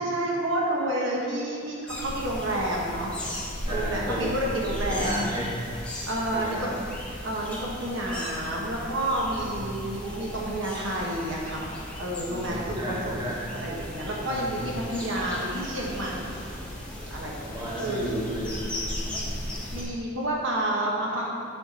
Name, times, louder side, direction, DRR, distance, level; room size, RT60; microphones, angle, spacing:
voice 1, 0.0-3.1 3.7-5.3 6.1-6.7 7.2-16.5 17.1-18.0 19.4-21.3, right 1 dB, 75° right, -3 dB, 1.3 m, -30 dB
sound 1, 1.9-19.8, left 1 dB, 5° left, 1.2 m, -37 dB
voice 2, 3.7-4.4 4.9-5.5 6.3-6.7 9.4-9.7 12.3-13.5 14.2-14.6 17.5-19.4, equal, 20° right, -6 dB, 1.4 m, -33 dB
7.9 x 5.7 x 4.3 m, 2.3 s
head